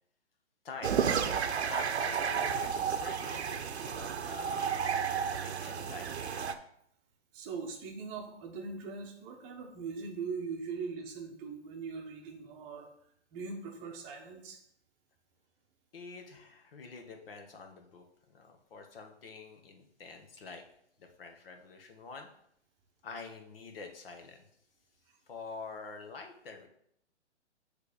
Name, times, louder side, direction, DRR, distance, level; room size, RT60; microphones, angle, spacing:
voice 1, 0.6-4.8 5.4-6.5 15.9-20.6 21.0-22.3 23.0-24.5 25.3-26.7, left 4 dB, 55° left, 4 dB, 1.4 m, -47 dB
sound 1, 0.8-6.5, right 7 dB, 65° right, 0.8 m, -32 dB
voice 2, 7.3-12.9 13.3-14.6, right 5 dB, 20° right, 2 dB, 0.9 m, -41 dB
8.1 x 3.4 x 5.0 m, 0.72 s
hypercardioid pair, 140°, 35 cm